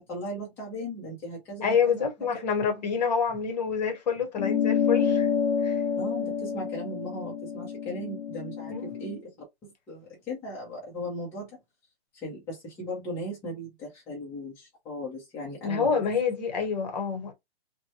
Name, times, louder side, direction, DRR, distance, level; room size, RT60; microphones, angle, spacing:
voice 1, 0.0-1.8 6.0-9.3 9.6-11.6 12.1-15.9, equal, 5° left, 0.6 m, -37 dB
voice 2, 1.6-5.3 5.6-5.8 8.7-8.9 15.6-17.3, left 6 dB, 40° left, 0.9 m, -27 dB
sound 1, 4.4-9.2, left 7 dB, 65° left, 0.5 m, -28 dB
3.1 x 2.1 x 2.7 m
hypercardioid pair, 155°, 33 cm